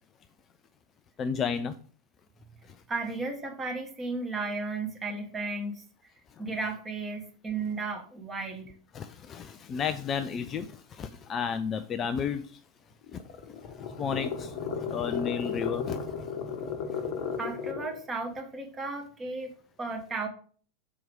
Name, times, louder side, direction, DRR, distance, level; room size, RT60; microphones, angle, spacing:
voice 1, 1.2-1.8 8.9-12.5 13.1-13.2 13.6-16.0, left 7 dB, 25° left, 10 dB, 0.4 m, -32 dB
voice 2, 2.9-5.8 6.4-8.7 17.4-19.5 19.8-20.3, right 3 dB, 15° right, 2 dB, 1.7 m, -34 dB
sound 1, 13.0-18.0, left 6 dB, 40° left, 1.1 m, -34 dB
6.1 x 4.6 x 5.1 m, 0.44 s
figure-of-eight pair, 90°, 0 cm